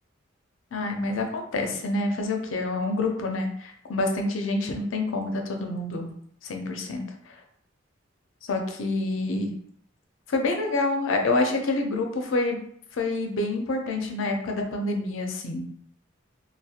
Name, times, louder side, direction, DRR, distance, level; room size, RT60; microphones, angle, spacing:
voice 1, 0.7-6.1 6.4-7.0 8.5-9.6 10.3-12.6 12.9-15.7, left 2 dB, 80° left, 3 dB, 0.5 m, -27 dB
2.4 x 2.0 x 2.7 m, 0.65 s
head